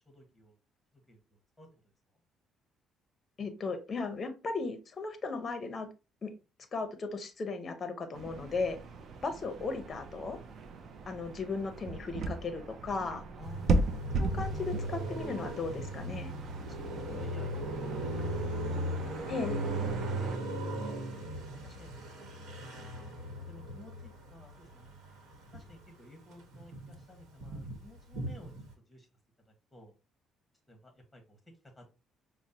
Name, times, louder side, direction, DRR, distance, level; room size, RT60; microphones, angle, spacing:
voice 1, 0.1-0.6 1.1-1.9 13.3-14.1 16.6-19.3 19.9-20.5 20.8-21.0 21.5-22.2 22.6-24.9 25.4-29.1 29.5-29.9 30.7-31.4 31.7-31.8, equal, 10° left, 3 dB, 1.0 m, -55 dB
voice 2, 3.4-5.9 6.2-6.3 6.7-8.8 9.2-10.4 11.1-13.2 14.2-16.3 19.3-19.6, left 4 dB, 30° left, 8 dB, 0.6 m, -36 dB
sound 1, 8.1-20.4, right 2 dB, 50° right, 0.4 m, -37 dB
Car passing by, 13.4-25.9 26.2-28.7, right 1 dB, 85° right, 1.0 m, -38 dB
5.0 x 2.0 x 2.7 m, 0.30 s
cardioid pair, 140°, 0 cm